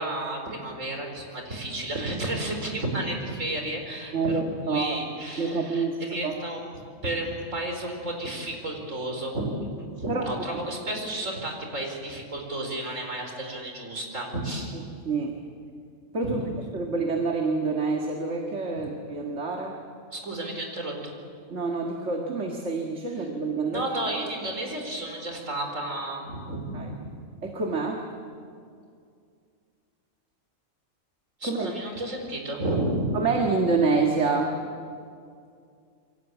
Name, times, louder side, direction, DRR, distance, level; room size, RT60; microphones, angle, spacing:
voice 1, 0.0-4.3 4.6-9.5 10.0-14.8 16.2-16.4 18.7-18.9 20.1-21.1 23.2-23.3 23.7-27.1 31.4-33.2, right 1 dB, 85° right, 2 dB, 5.0 m, -32 dB
voice 2, 4.1-5.0 5.4-6.3 10.1-10.2 15.1-15.4 16.1-16.4 16.7-19.8 21.5-23.9 26.7-26.9 27.4-28.1 31.4-31.7 33.1-34.6, right 4 dB, 65° right, 1 dB, 2.2 m, -27 dB
28.0 x 23.5 x 8.2 m, 2.3 s
omnidirectional pair, 1.3 m